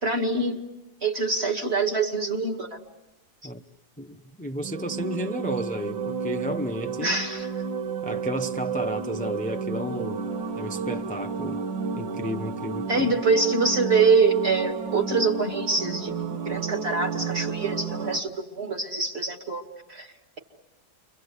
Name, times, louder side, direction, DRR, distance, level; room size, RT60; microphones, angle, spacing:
voice 1, 0.0-0.6 1.0-2.8 7.0-7.5 12.9-16.1 16.5-19.6 19.9-20.1, right 4 dB, 35° right, 2.4 m, -24 dB
voice 2, 4.0-7.2 8.0-10.3 10.6-11.6 11.9-13.1, equal, 10° left, 0.3 m, -32 dB
sound 1, 4.6-18.2, right 5 dB, 80° right, 2.0 m, -31 dB
29.5 x 24.5 x 8.2 m
omnidirectional pair, 2.0 m